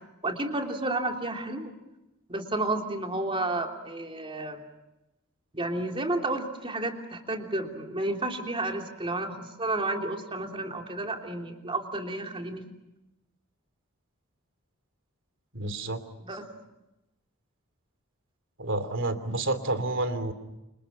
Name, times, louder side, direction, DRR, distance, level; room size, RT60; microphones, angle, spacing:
voice 1, 0.2-1.7 2.3-4.6 5.5-12.6 16.2-16.5, right 2 dB, 25° right, 3 dB, 3.3 m, -31 dB
voice 2, 15.5-16.0 18.6-20.3, right 2 dB, 65° right, 10 dB, 3.0 m, -29 dB
30.0 x 27.0 x 5.6 m, 0.94 s
head